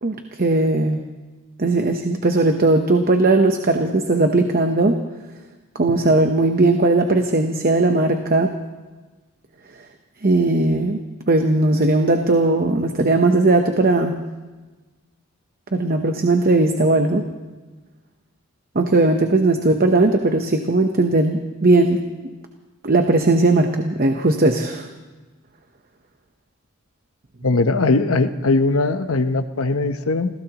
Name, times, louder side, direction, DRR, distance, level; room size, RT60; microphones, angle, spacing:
voice 1, 0.0-1.0 1.6-5.0 5.7-8.5 10.2-11.0 11.3-14.2 15.7-17.3 18.7-22.3 22.8-24.9, right 2 dB, 45° right, 5 dB, 0.9 m, -18 dB
voice 2, 27.4-30.3, left 3 dB, 90° left, 9 dB, 0.9 m, -20 dB
28.5 x 16.0 x 3.0 m, 1.2 s
head